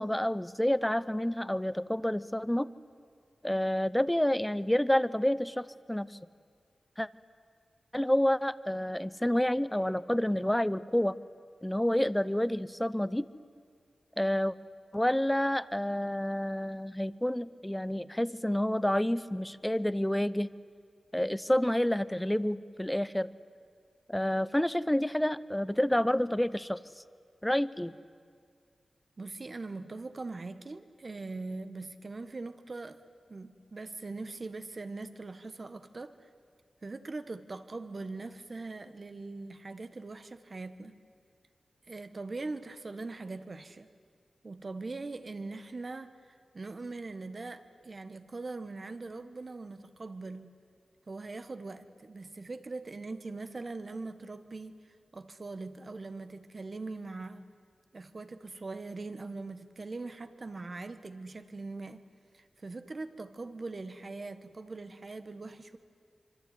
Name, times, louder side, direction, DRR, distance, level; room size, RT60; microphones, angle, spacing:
voice 1, 0.0-2.7 3.4-6.2 7.0-7.1 7.9-11.2 11.6-13.3 14.2-14.5 14.9-20.5 21.1-23.3 24.1-26.8 27.4-27.9, left 1 dB, 10° left, 16 dB, 0.8 m, -29 dB
voice 2, 29.2-33.0 33.3-36.3 36.8-41.0 41.9-43.9 44.4-50.5 51.1-54.8 55.1-57.5 57.9-62.0 62.3-65.8, right 3 dB, 45° right, 10 dB, 1.5 m, -41 dB
25.5 x 24.5 x 9.4 m, 2.1 s
wide cardioid pair, 75°, 0 cm